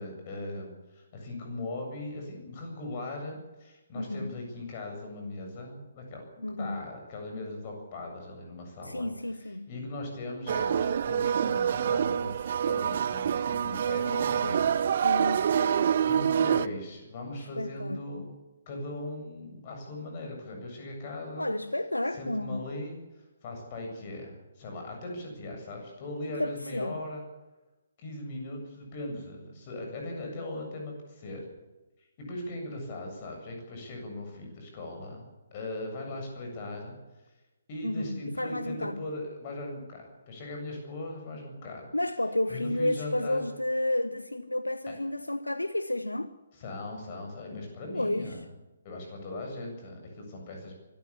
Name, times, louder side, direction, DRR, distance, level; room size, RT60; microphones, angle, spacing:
voice 1, 0.0-6.2 6.6-9.1 9.7-14.8 16.1-18.3 18.7-21.5 22.1-27.2 28.0-31.4 32.2-37.0 37.7-41.9 42.5-43.4 46.6-48.4 48.8-50.8, left 2 dB, 35° left, 7.6 m, -39 dB
voice 2, 3.9-4.3 6.4-6.8 8.8-9.7 14.1-15.9 17.6-18.3 21.4-22.7 26.4-27.0 37.8-39.0 41.9-46.3 47.9-48.4, left 1 dB, 85° left, 1.0 m, -32 dB
sound 1, 10.5-16.7, right 8 dB, 45° right, 0.6 m, -26 dB
24.0 x 13.5 x 8.5 m
figure-of-eight pair, 135°, 0 cm